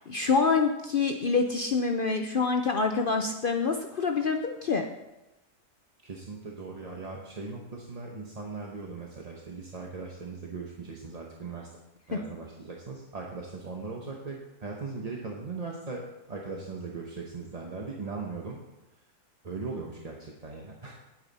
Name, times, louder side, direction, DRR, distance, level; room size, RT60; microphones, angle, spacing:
voice 1, 0.0-4.9 12.1-12.2, left 4 dB, 65° left, 4 dB, 0.5 m, -26 dB
voice 2, 6.0-11.7 12.1-18.6 19.4-20.9, right 4 dB, 30° right, -1 dB, 0.9 m, -39 dB
10.5 x 8.8 x 4.1 m, 0.97 s
omnidirectional pair, 1.7 m